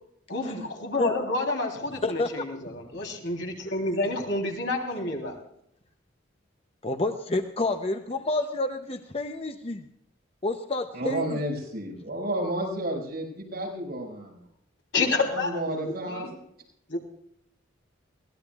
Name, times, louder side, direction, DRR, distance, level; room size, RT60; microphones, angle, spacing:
voice 1, 0.3-5.4 14.9-16.4 16.9-17.0, left 2 dB, 65° left, 2 dB, 3.5 m, -29 dB
voice 2, 2.0-2.4 6.8-9.9 10.4-11.4, left 2 dB, 30° left, 7 dB, 0.7 m, -29 dB
voice 3, 10.9-14.4 15.3-16.3, right 1 dB, 50° right, -3 dB, 6.5 m, -31 dB
22.5 x 18.0 x 2.4 m, 0.73 s
head